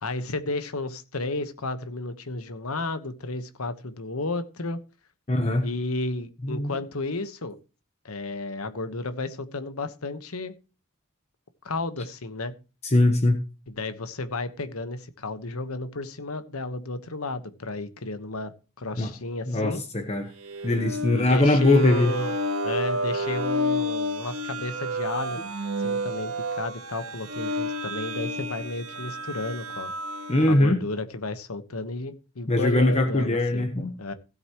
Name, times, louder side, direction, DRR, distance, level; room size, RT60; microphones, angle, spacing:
voice 1, 0.0-4.8 5.6-7.6 8.0-10.5 11.6-12.5 13.7-18.5 18.8-19.8 21.1-22.3 22.6-25.4 25.8-29.9 30.4-33.7 34.0-34.1, left 2 dB, 90° left, 1.2 m, -32 dB
voice 2, 5.3-5.7 6.4-6.7 12.8-13.4 19.0-19.1 19.5-20.3 20.6-22.1 30.3-30.8 32.5-33.9, left 1 dB, 30° left, 1.0 m, -21 dB
sound 1, 20.4-30.6, equal, 85° right, 1.8 m, -31 dB
16.5 x 8.0 x 3.1 m
head